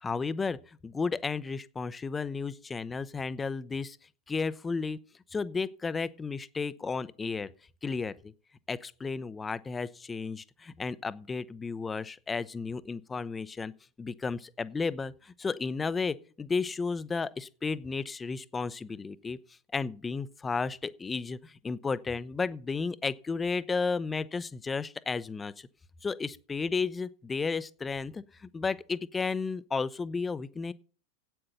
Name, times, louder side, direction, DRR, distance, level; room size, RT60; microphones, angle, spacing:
voice 1, 0.0-4.0 4.3-5.0 5.3-7.5 7.8-8.3 8.7-13.7 14.0-19.4 19.7-25.7 26.0-30.7, left 4 dB, 15° left, 0.6 m, -33 dB
8.9 x 8.7 x 6.7 m
figure-of-eight pair, 90°, 0 cm